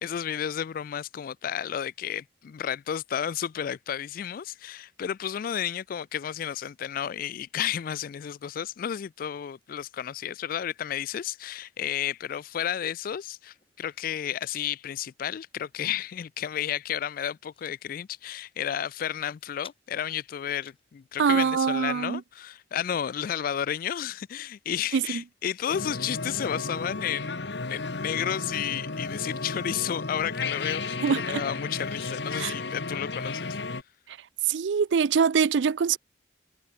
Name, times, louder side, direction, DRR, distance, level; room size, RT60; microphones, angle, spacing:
voice 1, 0.0-33.6, left 9 dB, 50° left, 0.3 m, -32 dB
sound 1, 13.5-14.7 15.1-15.2 15.4-15.7 16.1-16.8 17.0-17.7 18.5-19.8 20.3-21.6 22.5-22.6 22.8-22.9, left 7 dB, 30° left, 2.2 m, -55 dB
voice 2, 21.2-22.2 24.9-25.2 31.0-31.4 32.4-32.5 34.5-36.0, right 6 dB, 80° right, 0.4 m, -24 dB
sound 2, 25.7-33.8, left 3 dB, 70° left, 1.4 m, -33 dB
head